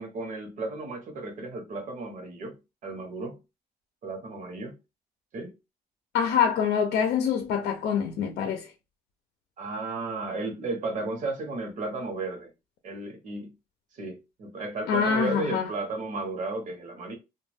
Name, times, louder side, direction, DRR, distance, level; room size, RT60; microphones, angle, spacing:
voice 1, 0.0-3.4 4.0-4.8 5.3-5.5 9.6-12.5 12.8-13.5 13.9-17.1, right 2 dB, 50° right, 0.9 m, -34 dB
voice 2, 6.1-8.7 14.9-15.7, left 7 dB, 75° left, 0.6 m, -25 dB
2.2 x 2.2 x 3.3 m
cardioid pair, 110°, 17 cm